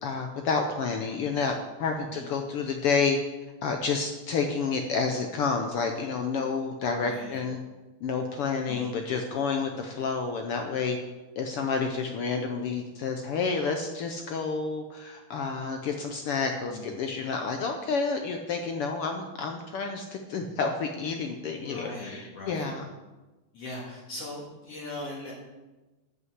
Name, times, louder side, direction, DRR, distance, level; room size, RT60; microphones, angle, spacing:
voice 1, 0.0-1.5 1.8-3.2 3.6-7.6 8.0-11.0 11.4-22.9, left 5 dB, 75° left, 4 dB, 1.3 m, -29 dB
voice 2, 7.0-7.4 8.7-9.0 16.7-17.0 21.5-22.7 23.5-25.3, left 2 dB, 55° left, -5 dB, 2.9 m, -40 dB
11.0 x 5.5 x 8.0 m, 1.2 s
omnidirectional pair, 3.4 m